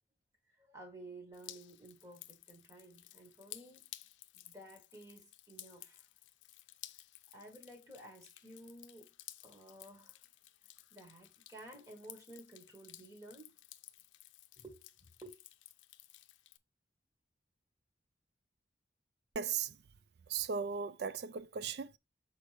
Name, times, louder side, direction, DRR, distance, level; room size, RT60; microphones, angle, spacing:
voice 1, 0.5-3.9 4.3-6.1 7.3-9.1 9.4-10.2 10.9-13.5 14.6-15.3, right 1 dB, 15° right, 1.6 m, -54 dB
Drip, 1.3-16.6, left 15 dB, 90° left, 0.5 m, -55 dB
voice 2, 19.3-19.8 20.3-22.0, right 6 dB, 60° right, 0.4 m, -37 dB
6.5 x 4.4 x 3.3 m
head